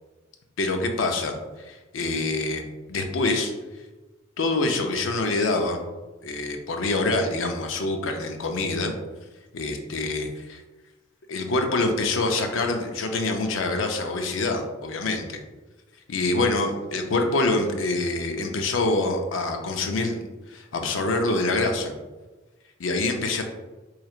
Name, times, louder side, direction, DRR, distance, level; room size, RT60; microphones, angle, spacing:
voice 1, 0.6-2.6 2.9-3.5 4.4-5.8 6.2-8.9 9.5-10.6 11.3-15.4 16.1-20.2 20.5-21.9 22.8-23.4, left 2 dB, 85° left, 4 dB, 0.5 m, -25 dB
4.6 x 3.1 x 2.4 m, 1.2 s
head